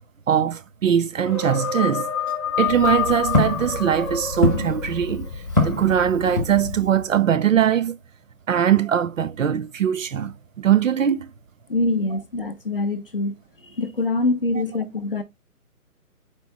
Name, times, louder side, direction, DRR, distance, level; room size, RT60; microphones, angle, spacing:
voice 1, 0.3-2.1 2.6-5.3 5.6-8.0 8.5-11.3 12.1-12.2 14.5-14.6, right 9 dB, 60° right, 0.5 m, -21 dB
sound 1, 1.2-5.3, left 7 dB, 20° left, 0.9 m, -27 dB
Walk footsteps, 2.5-7.0, left 2 dB, 15° right, 0.6 m, -26 dB
voice 2, 11.7-13.3 13.8-15.2, left 2 dB, 40° left, 0.5 m, -24 dB
4.6 x 4.4 x 2.5 m
hypercardioid pair, 160°, 44 cm